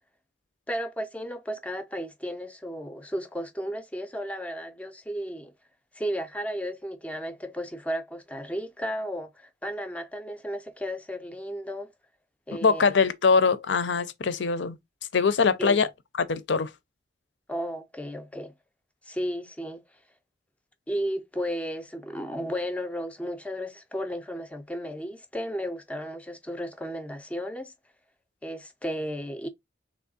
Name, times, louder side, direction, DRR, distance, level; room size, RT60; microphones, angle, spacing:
voice 1, 0.7-5.5 5.9-11.9 12.5-12.8 15.6-15.8 17.5-18.5 19.1-19.8 20.9-27.7 28.4-29.5, equal, 5° left, 0.4 m, -34 dB
voice 2, 12.6-14.8 15.1-15.9 16.2-16.7, left 5 dB, 70° left, 0.6 m, -22 dB
3.5 x 3.0 x 4.0 m
head